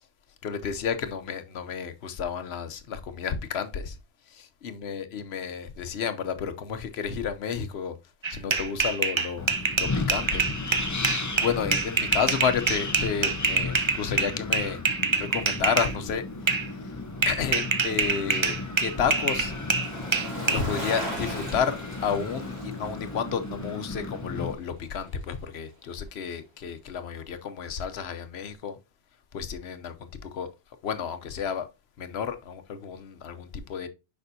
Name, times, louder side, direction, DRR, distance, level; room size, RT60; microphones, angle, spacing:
voice 1, 0.4-4.0 4.3-7.9 8.3-9.5 9.8-10.4 10.7-11.1 11.4-14.8 15.2-16.2 17.3-19.5 20.5-21.8 22.0-28.8 29.3-30.5 30.8-31.7 32.0-33.9, left 7 dB, 80° left, 1.0 m, -31 dB
sound 1, 8.2-15.9 16.5-16.7 17.2-20.6, right 4 dB, 35° right, 0.6 m, -26 dB
Wind, 9.4-24.5, left 3 dB, 20° left, 0.6 m, -35 dB
Bicycle, 17.0-25.4 25.7-25.8, right 1 dB, 85° right, 2.7 m, -40 dB
6.7 x 5.4 x 2.7 m
omnidirectional pair, 1.1 m